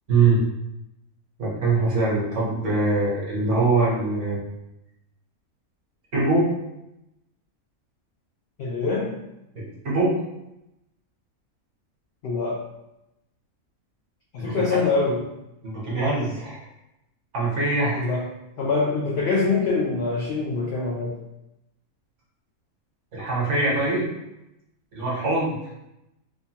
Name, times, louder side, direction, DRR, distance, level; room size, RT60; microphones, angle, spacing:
voice 1, 0.1-0.4 1.4-4.4 6.1-6.5 9.8-10.1 14.4-14.7 15.6-16.6 17.3-18.2 23.1-24.1 24.9-25.6, right 3 dB, 60° right, -5 dB, 1.2 m, -23 dB
voice 2, 8.6-9.1 12.2-12.6 14.3-15.2 18.0-18.3 18.6-21.1, left 4 dB, 70° left, -3 dB, 0.6 m, -24 dB
3.0 x 2.1 x 2.8 m, 0.88 s
omnidirectional pair, 1.6 m